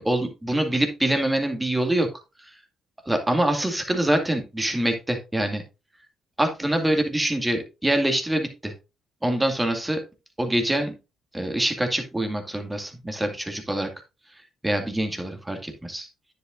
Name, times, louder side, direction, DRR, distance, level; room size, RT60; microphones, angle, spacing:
voice 1, 0.0-2.1 2.4-2.6 3.1-5.6 6.4-8.7 9.2-10.0 10.4-10.9 11.3-13.9 14.6-16.1, right 1 dB, 15° right, 5 dB, 2.2 m, -25 dB
9.6 x 7.8 x 2.6 m, 0.28 s
hypercardioid pair, 55°, 0 cm